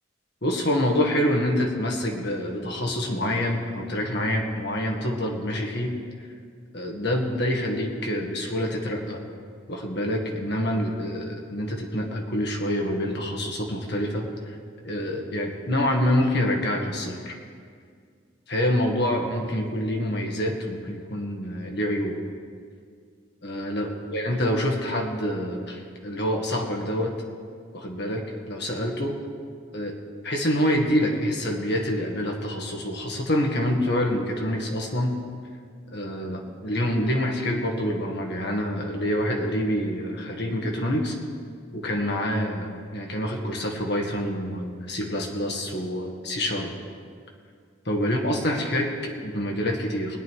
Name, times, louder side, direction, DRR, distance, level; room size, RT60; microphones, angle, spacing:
voice 1, 0.4-6.0 6.7-9.2 9.7-14.6 14.8-17.4 18.5-22.2 23.4-27.2 27.7-29.2 29.7-29.9 30.2-35.2 35.9-41.2 41.7-46.7 47.9-50.2, equal, 55° left, 1 dB, 1.8 m, -26 dB
20.0 x 9.5 x 4.7 m, 2.1 s
head